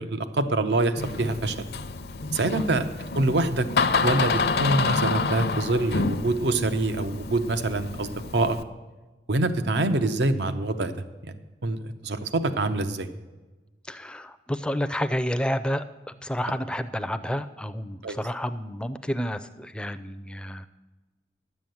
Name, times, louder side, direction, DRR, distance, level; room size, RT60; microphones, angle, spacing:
voice 1, 0.0-1.7 2.3-2.9 3.2-3.7 4.0-8.6 9.3-10.9 11.2-11.4 11.6-13.1 18.0-18.2, right 2 dB, 80° right, 10 dB, 0.8 m, -25 dB
Door, 1.0-8.6, left 4 dB, 65° left, 0.6 m, -28 dB
voice 2, 13.9-20.7, equal, 5° left, 10 dB, 0.4 m, -30 dB
11.0 x 7.2 x 7.7 m, 1.2 s
head